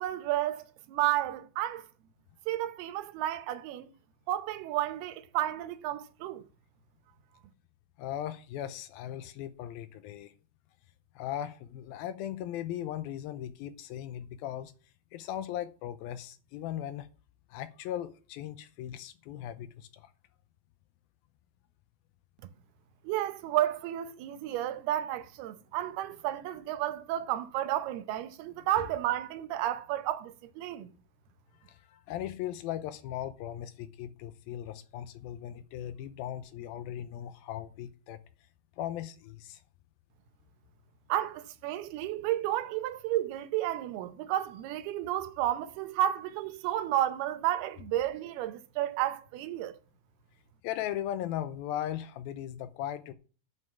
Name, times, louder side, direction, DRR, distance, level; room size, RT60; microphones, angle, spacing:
voice 1, 0.0-1.9 2.5-3.9 4.3-6.4 23.0-30.9 41.1-49.8, right 13 dB, 80° right, 2.7 m, -32 dB
voice 2, 8.0-10.3 11.2-14.7 15.1-17.1 17.5-20.1 31.7-38.2 38.8-39.6 50.6-53.1, left 11 dB, 80° left, 2.4 m, -38 dB
9.4 x 5.5 x 7.2 m
omnidirectional pair, 4.5 m